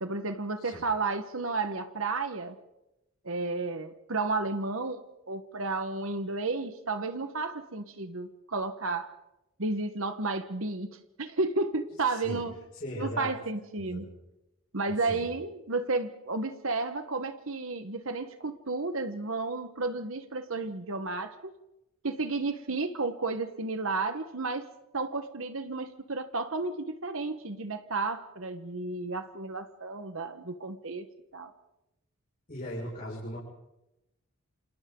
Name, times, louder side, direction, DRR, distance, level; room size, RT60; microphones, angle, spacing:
voice 1, 0.0-2.6 3.2-5.0 5.3-9.1 9.6-12.5 13.0-14.1 14.7-21.5 22.0-24.7 24.9-31.1 31.3-31.5, right 3 dB, 70° right, 9 dB, 1.4 m, -32 dB
voice 2, 12.0-12.4 12.7-13.3 13.8-14.1 15.1-15.2 32.5-33.4, equal, 40° left, -6 dB, 5.9 m, -38 dB
29.0 x 27.5 x 3.9 m, 0.93 s
head